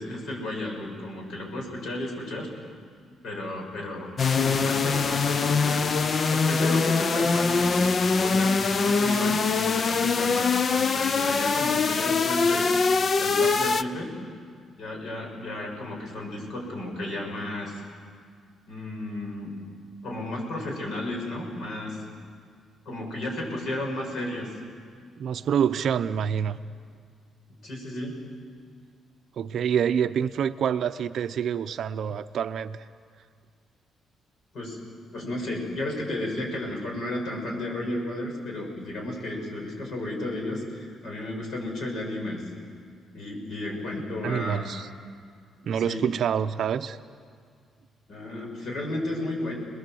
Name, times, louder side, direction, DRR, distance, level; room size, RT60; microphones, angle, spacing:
voice 1, 0.0-2.5 3.2-5.9 6.3-12.9 13.2-14.1 14.8-17.8 18.7-19.5 20.0-22.0 22.9-24.5 27.6-28.2 34.5-34.8 35.1-42.4 43.1-44.7 45.6-46.0 48.1-49.5, left 1 dB, 55° left, 1 dB, 6.9 m, -33 dB
sound 1, 4.2-13.8, left 4 dB, 35° left, 0.7 m, -23 dB
voice 2, 25.2-26.6 29.4-32.8 44.2-44.9 45.7-47.0, right 8 dB, 55° right, 11 dB, 0.7 m, -27 dB
30.0 x 21.5 x 7.8 m, 2.1 s
cardioid pair, 165°, 0 cm